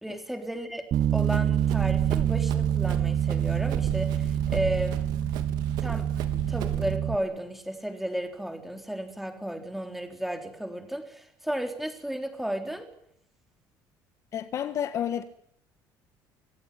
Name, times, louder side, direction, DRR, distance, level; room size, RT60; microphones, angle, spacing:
voice 1, 0.0-5.0 5.8-6.1 6.5-12.9, right 1 dB, ahead, 3.7 m, -34 dB
Bass guitar, 0.9-7.2, right 9 dB, 45° right, 1.0 m, -26 dB
Run, 0.9-7.0, right 11 dB, 65° right, 3.3 m, -36 dB
voice 2, 14.3-15.2, left 9 dB, 40° left, 1.5 m, -30 dB
26.0 x 17.5 x 9.5 m
cardioid pair, 155°, 7 cm